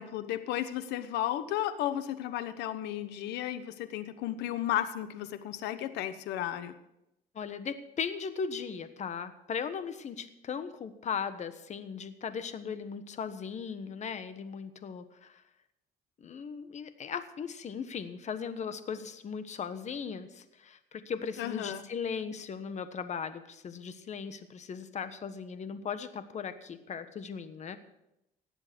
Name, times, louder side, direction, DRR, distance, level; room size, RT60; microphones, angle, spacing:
voice 1, 0.0-6.7 21.4-21.8, left 12 dB, 85° left, 13 dB, 1.1 m, -34 dB
voice 2, 7.3-15.4 16.2-27.8, left 6 dB, 45° left, 11 dB, 1.3 m, -38 dB
18.0 x 7.7 x 6.2 m, 0.85 s
cardioid pair, 110°, 17 cm